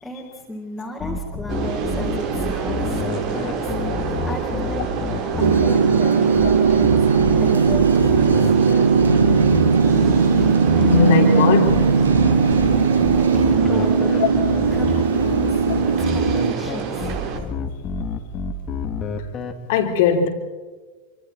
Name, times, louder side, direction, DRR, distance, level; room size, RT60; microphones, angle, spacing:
voice 1, 0.0-3.8 4.2-4.8 5.4-7.1 7.4-8.4 13.3-14.1 14.7-15.7 16.0-17.2, equal, 5° left, -3 dB, 4.4 m, -34 dB
sound 1, 1.0-19.5, left 5 dB, 30° left, 2.5 m, -28 dB
sound 2, 1.5-17.4, right 6 dB, 40° right, 3.3 m, -28 dB
sound 3, 5.4-16.5, right 5 dB, 75° right, 1.2 m, -18 dB
voice 2, 10.8-11.8 19.7-20.3, left 6 dB, 50° left, 4 dB, 3.4 m, -18 dB
28.0 x 26.0 x 4.2 m, 1.4 s
figure-of-eight pair, 90°, 0 cm